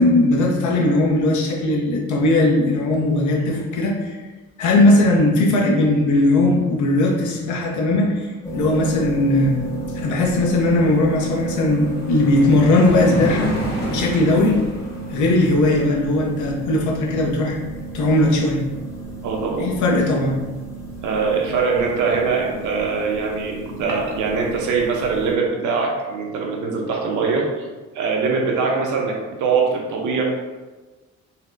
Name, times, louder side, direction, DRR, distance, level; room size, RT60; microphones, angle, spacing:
voice 1, 0.0-4.2 4.6-9.6 9.9-13.5 13.9-14.6 15.1-17.6 17.9-18.6 19.6-20.4, left 2 dB, 75° left, -1 dB, 0.6 m, -18 dB
sound 1, 8.4-25.3, right 3 dB, 10° left, 0.8 m, -33 dB
sound 2, 9.8-9.9 10.2-15.9, equal, 35° left, 1.1 m, -30 dB
voice 2, 19.2-19.7 21.0-27.7 27.9-30.2, right 4 dB, 80° right, 0 dB, 0.7 m, -22 dB
4.1 x 2.1 x 2.5 m, 1.3 s
cardioid pair, 90°, 30 cm